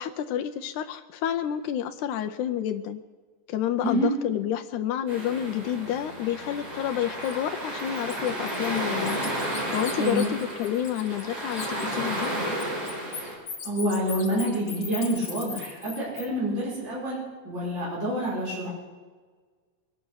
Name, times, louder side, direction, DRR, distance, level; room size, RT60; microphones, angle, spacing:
voice 1, 0.0-3.0 3.5-9.2 9.7-12.3, left 10 dB, 80° left, 7 dB, 1.8 m, -29 dB
sound 1, 5.1-13.3, right 1 dB, 45° right, 5.9 m, -32 dB
Bird, 7.2-7.4 7.8-11.3 11.5-16.3, left 6 dB, 45° left, 2.4 m, -39 dB
voice 2, 10.0-10.3 13.6-18.7, right 1 dB, 30° right, -7 dB, 6.0 m, -27 dB
23.0 x 9.4 x 6.3 m, 1.5 s
omnidirectional pair, 4.1 m